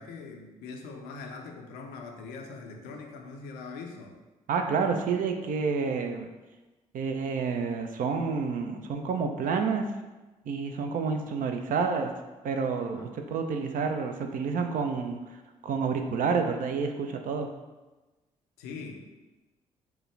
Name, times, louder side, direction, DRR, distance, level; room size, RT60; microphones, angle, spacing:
voice 1, 0.0-4.2 12.9-13.1 18.6-19.1, left 4 dB, 70° left, 3 dB, 0.5 m, -42 dB
voice 2, 4.5-6.3 6.9-9.8 10.5-12.1 12.4-15.2 15.6-17.5, right 5 dB, 55° right, 5 dB, 0.5 m, -29 dB
4.5 x 2.2 x 3.2 m, 1.1 s
hypercardioid pair, 45°, 17 cm